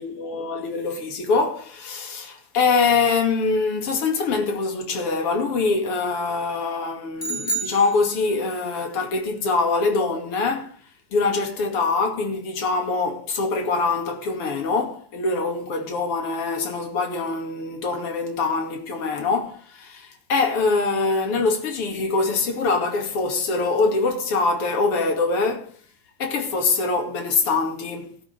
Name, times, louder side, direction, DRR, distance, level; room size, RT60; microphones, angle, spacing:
voice 1, 0.0-10.8 11.1-25.7 26.2-28.1, left 4 dB, 45° left, 3.1 m, -24 dB
sound 1, 7.2-8.6, right 3 dB, 20° left, 1.3 m, -30 dB
17.5 x 11.5 x 3.5 m
omnidirectional pair, 3.6 m